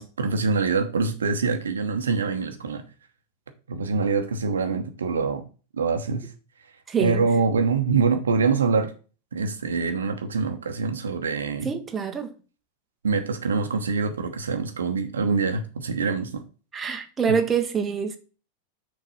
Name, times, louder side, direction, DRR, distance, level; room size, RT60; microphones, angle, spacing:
voice 1, 0.0-2.8 3.7-5.4 5.7-6.3 7.0-8.9 9.3-11.7 13.0-16.4 17.3-17.4, right 4 dB, 70° right, 1.0 m, -25 dB
voice 2, 6.9-7.2 11.6-12.3 16.7-18.2, right 7 dB, 20° right, 0.9 m, -25 dB
6.4 x 3.9 x 5.5 m
figure-of-eight pair, 90°, 0 cm